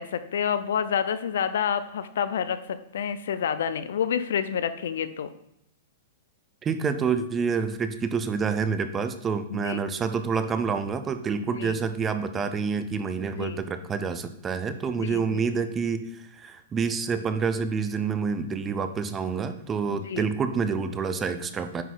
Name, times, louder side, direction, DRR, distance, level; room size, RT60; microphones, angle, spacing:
voice 1, 0.0-5.3 9.5-9.8 11.4-11.9 13.3-13.6 15.0-15.4 19.9-20.3, left 8 dB, 80° left, 13 dB, 0.5 m, -29 dB
voice 2, 6.6-21.8, right 5 dB, 15° right, 10 dB, 0.4 m, -28 dB
9.3 x 4.1 x 3.9 m, 0.78 s
supercardioid pair, 165°, 0 cm